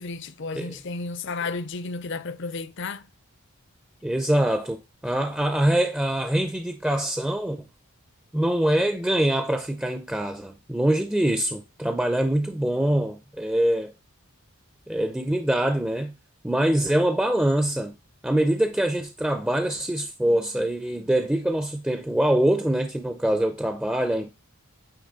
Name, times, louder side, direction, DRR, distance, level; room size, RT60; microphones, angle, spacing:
voice 1, 0.0-3.1, left 3 dB, 55° left, 0.6 m, -32 dB
voice 2, 4.0-7.6 8.3-13.9 14.9-16.1 16.4-17.9 18.2-24.3, right 1 dB, 5° right, 0.4 m, -24 dB
8.7 x 3.1 x 3.9 m
head